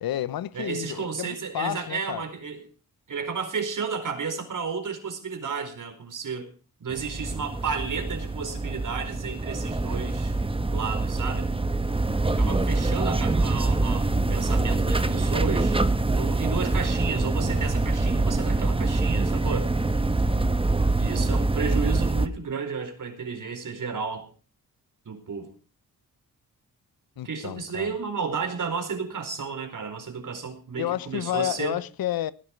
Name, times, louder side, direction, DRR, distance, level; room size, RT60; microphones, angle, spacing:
voice 1, 0.0-2.2 20.2-20.6 27.2-28.0 30.8-32.3, left 12 dB, 80° left, 0.9 m, -31 dB
voice 2, 0.5-2.6 3.1-6.5 6.8-10.4 10.7-11.5 12.3-19.7 21.0-24.3 25.1-25.5 27.2-31.8, right 5 dB, 60° right, 4.5 m, -32 dB
sound 1, 6.9-22.3, right 2 dB, 15° right, 1.1 m, -25 dB
19.5 x 11.0 x 4.5 m
cardioid pair, 85°, 35 cm